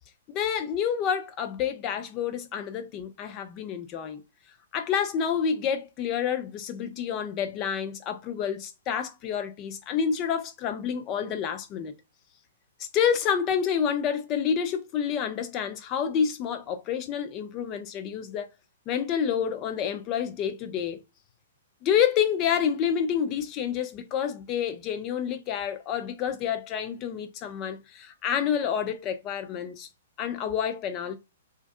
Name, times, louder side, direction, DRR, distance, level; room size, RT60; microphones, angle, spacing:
voice 1, 0.3-4.2 4.7-11.9 12.8-18.5 18.9-21.0 21.8-29.9 30.2-31.2, left 8 dB, 30° left, 0.4 m, -28 dB
2.5 x 2.2 x 2.5 m
figure-of-eight pair, 115°, 0 cm